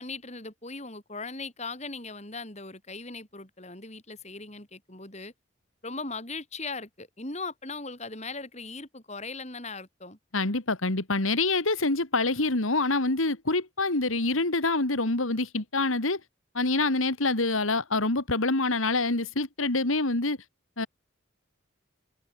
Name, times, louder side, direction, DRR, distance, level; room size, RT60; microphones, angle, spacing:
voice 1, 0.0-5.3 5.8-10.2, left 3 dB, 35° left, 5.1 m, -39 dB
voice 2, 10.3-16.2 16.5-20.4 20.8-20.9, left 2 dB, 90° left, 2.7 m, -26 dB
head